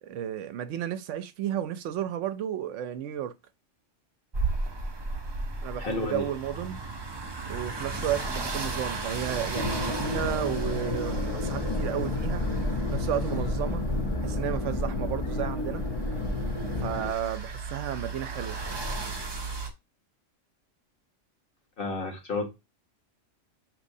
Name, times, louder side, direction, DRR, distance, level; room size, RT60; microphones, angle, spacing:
voice 1, 0.0-3.3 5.6-6.8 7.5-12.4 12.9-13.8 14.2-15.8 16.8-18.6, right 10 dB, 75° right, 0.9 m, -33 dB
sound 1, 4.3-19.7, right 3 dB, 30° right, 0.5 m, -36 dB
voice 2, 5.8-6.2 21.8-22.5, left 3 dB, 50° left, 1.2 m, -31 dB
sound 2, 9.5-17.1, left 2 dB, 30° left, 0.6 m, -30 dB
6.1 x 3.0 x 2.7 m
omnidirectional pair, 1.3 m